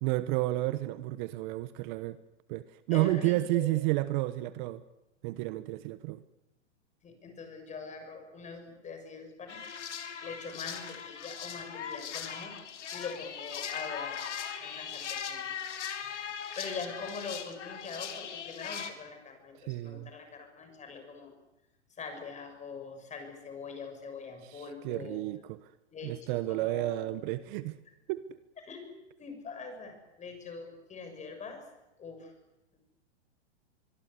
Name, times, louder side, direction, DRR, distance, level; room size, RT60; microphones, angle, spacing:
voice 1, 0.0-2.2 2.5-4.8 5.2-6.2 19.5-20.1 24.4-25.7 26.0-27.8 28.1-28.2, right 18 dB, 45° right, 1.1 m, -31 dB
voice 2, 2.9-3.8 7.0-9.6 10.2-12.5 12.9-14.2 14.6-15.6 16.6-21.3 22.0-25.2 25.9-27.0 28.6-31.6 32.0-32.3 32.7-32.8, left 4 dB, 20° left, 6.9 m, -43 dB
sound 1, 9.5-18.9, left 8 dB, 80° left, 3.3 m, -39 dB
24.5 x 23.5 x 8.3 m
hypercardioid pair, 125°, 35 cm